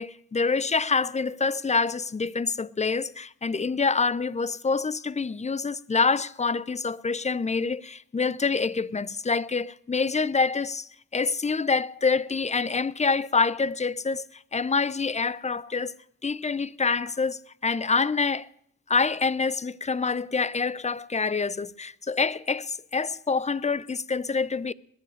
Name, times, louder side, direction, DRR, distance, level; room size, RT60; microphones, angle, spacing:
voice 1, 0.0-15.9 16.2-18.5 18.9-24.7, left 4 dB, 20° left, 0.5 m, -26 dB
21.5 x 8.4 x 6.4 m
supercardioid pair, 55°, 34 cm